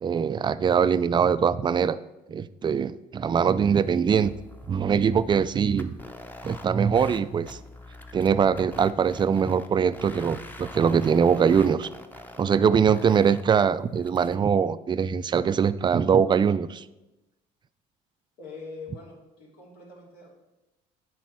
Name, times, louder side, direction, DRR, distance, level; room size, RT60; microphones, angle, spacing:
voice 1, 0.0-2.0 2.3-4.3 4.7-6.0 6.4-7.6 8.1-11.9 12.4-16.8, right 7 dB, 25° right, 14 dB, 0.4 m, -22 dB
sound 1, 4.2-6.6 6.9-7.2 7.5-9.7 9.9-12.6 12.9-13.4 14.0-14.3, left 1 dB, 10° left, 0.8 m, -44 dB
voice 2, 18.4-20.3, left 4 dB, 75° left, -3 dB, 3.0 m, -43 dB
9.3 x 4.1 x 6.0 m, 1.0 s
supercardioid pair, 80°, 17 cm